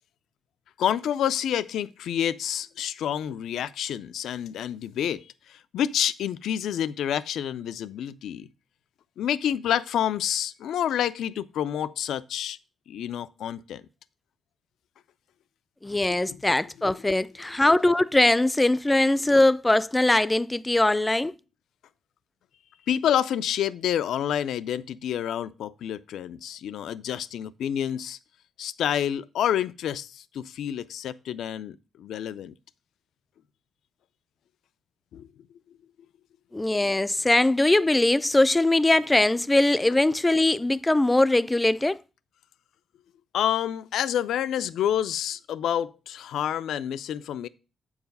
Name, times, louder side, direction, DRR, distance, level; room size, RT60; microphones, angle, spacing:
voice 1, 0.8-8.5 9.2-12.6 12.9-13.8 16.0-16.4 22.9-28.2 28.6-32.5 35.1-35.3 43.3-47.5, left 10 dB, 90° left, 0.4 m, -28 dB
voice 2, 15.8-21.3 36.5-42.0, left 2 dB, 15° left, 0.3 m, -21 dB
8.0 x 4.8 x 5.2 m
cardioid pair, 110°, 0 cm